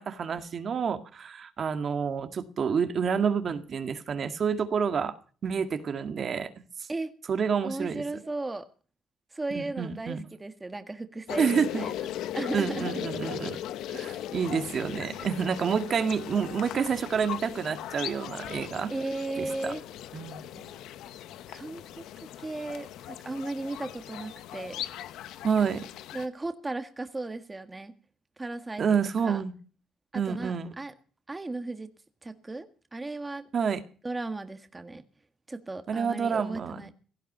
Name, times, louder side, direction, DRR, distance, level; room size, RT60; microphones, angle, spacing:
voice 1, 0.0-5.1 5.4-6.6 7.3-8.0 9.5-10.2 11.4-11.8 12.5-13.6 13.9-18.9 19.4-19.7 20.1-20.5 25.4-25.9 28.8-29.5 30.1-30.7 33.5-33.8 35.9-36.9, right 6 dB, 50° right, 1.9 m, -28 dB
voice 2, 7.6-8.7 9.3-12.0 12.3-13.0 18.9-19.8 21.5-22.0 22.4-24.8 26.1-27.9 28.4-28.8 29.2-29.4 30.1-30.9 31.3-31.9 32.2-33.5 34.0-35.0 35.5-36.9, right 2 dB, 20° right, 1.8 m, -36 dB
sound 1, 11.3-26.3, left 12 dB, 90° left, 1.1 m, -38 dB
17.0 x 15.0 x 5.5 m
cardioid pair, 90°, 0 cm